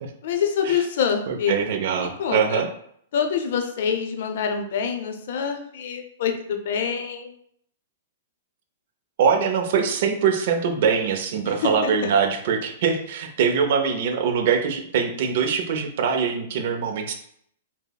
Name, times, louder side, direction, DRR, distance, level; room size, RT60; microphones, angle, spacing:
voice 1, 0.2-1.6 2.0-2.6 3.1-7.3 11.4-12.1, left 7 dB, 55° left, 5 dB, 0.5 m, -26 dB
voice 2, 1.3-2.7 9.2-17.1, right 6 dB, 50° right, 4 dB, 0.5 m, -23 dB
5.4 x 2.0 x 2.3 m, 0.67 s
hypercardioid pair, 165°, 0 cm